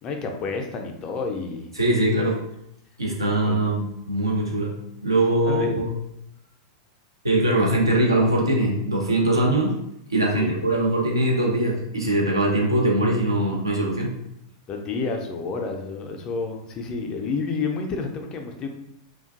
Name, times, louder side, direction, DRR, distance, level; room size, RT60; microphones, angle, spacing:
voice 1, 0.0-1.7 3.4-3.6 5.4-5.8 10.3-10.5 14.7-18.7, left 4 dB, 30° left, 3 dB, 0.4 m, -30 dB
voice 2, 1.8-2.4 3.0-4.8 5.0-5.9 7.2-9.8 10.1-14.1, right 1 dB, 85° right, -2 dB, 0.5 m, -22 dB
2.4 x 2.2 x 2.3 m, 0.78 s
figure-of-eight pair, 95°, 2 cm